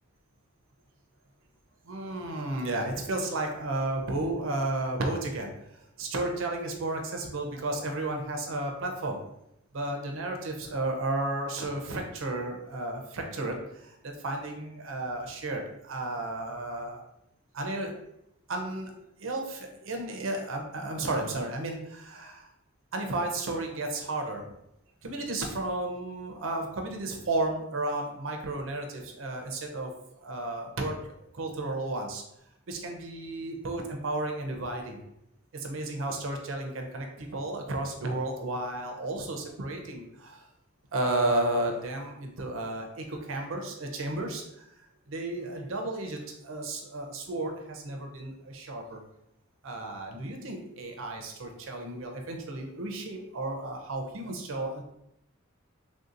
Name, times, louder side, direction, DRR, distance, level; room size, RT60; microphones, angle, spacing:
voice 1, 1.8-9.2 9.7-17.0 17.5-17.9 18.5-18.9 19.2-22.5 22.9-24.5 25.0-29.9 30.2-30.9 31.3-32.2 32.7-35.0 35.5-40.5 40.9-44.7 45.1-49.0 49.6-54.8, right 2 dB, 70° right, 3 dB, 0.6 m, -33 dB
3.3 x 2.7 x 2.5 m, 0.80 s
head